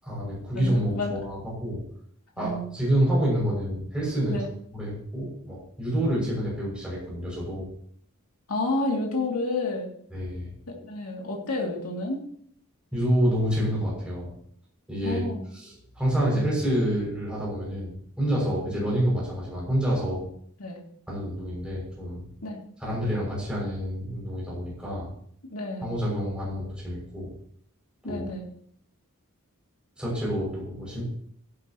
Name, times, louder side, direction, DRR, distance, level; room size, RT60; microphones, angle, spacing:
voice 1, 0.0-1.8 2.4-4.4 4.7-7.6 10.1-10.5 12.9-14.3 14.9-15.2 15.5-17.9 18.2-20.2 21.1-22.3 22.8-25.1 25.8-27.3 28.0-28.3 30.0-31.0, equal, 5° right, -6 dB, 6.5 m, -28 dB
voice 2, 0.5-1.1 2.4-2.7 4.3-4.5 8.5-9.9 10.8-12.2 15.0-15.4 20.6-20.8 22.4-22.6 25.5-25.9 28.0-28.5, left 2 dB, 70° left, -1 dB, 2.7 m, -30 dB
17.0 x 10.5 x 3.0 m, 0.64 s
head